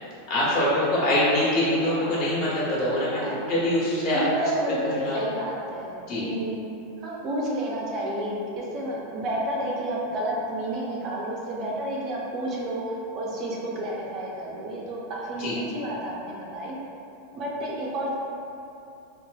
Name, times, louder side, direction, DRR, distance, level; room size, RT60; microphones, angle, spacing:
voice 1, 0.3-4.2 5.0-5.2 6.1-6.2 15.4-15.6, left 1 dB, 50° left, -7 dB, 1.1 m, -24 dB
voice 2, 1.9-2.3 3.2-3.7 4.1-6.6 7.0-16.8 17.3-18.1, right 1 dB, 30° right, -4 dB, 0.4 m, -31 dB
3.9 x 2.4 x 2.3 m, 2.8 s
supercardioid pair, 160°, 0 cm